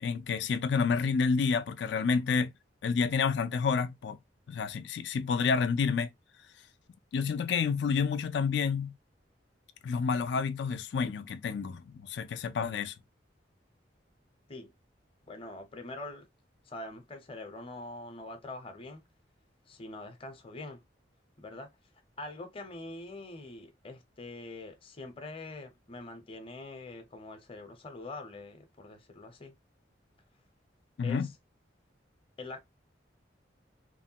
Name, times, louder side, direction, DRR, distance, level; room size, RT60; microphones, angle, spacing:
voice 1, 0.0-2.5 2.8-4.2 4.5-6.1 7.1-8.9 9.8-12.9 31.0-31.3, left 5 dB, 70° left, 0.4 m, -29 dB
voice 2, 15.3-16.3 16.7-19.0 19.7-20.8 21.4-21.7 22.2-29.6 31.0-31.4 32.4-32.6, left 2 dB, 30° left, 0.6 m, -44 dB
3.1 x 2.1 x 2.7 m
head